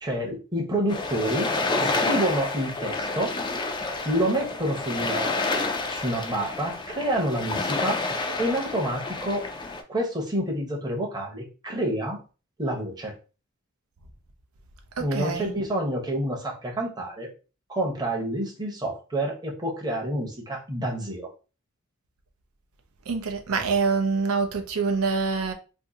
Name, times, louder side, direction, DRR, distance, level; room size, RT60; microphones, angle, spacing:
voice 1, 0.0-1.5 1.8-3.3 4.0-8.0 8.4-9.4 9.9-12.2 12.6-13.1 15.0-17.3 17.7-21.3, right 1 dB, 20° right, 0.8 m, -28 dB
sound 1, 0.9-9.8, left 3 dB, 20° left, 0.4 m, -29 dB
voice 2, 15.0-15.5 23.1-25.5, right 4 dB, 90° right, 0.6 m, -25 dB
2.7 x 2.6 x 3.7 m
head